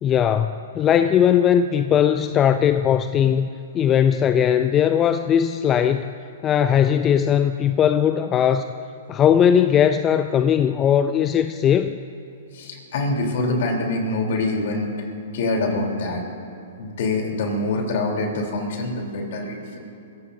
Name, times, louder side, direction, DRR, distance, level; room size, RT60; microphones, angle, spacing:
voice 1, 0.0-3.5 3.7-6.1 6.4-8.6 9.1-12.0, left 9 dB, 25° left, 9 dB, 0.5 m, -19 dB
voice 2, 12.5-16.2 16.8-19.8, left 2 dB, 60° left, 1 dB, 3.7 m, -25 dB
26.0 x 15.5 x 2.8 m, 2.8 s
hypercardioid pair, 125°, 0 cm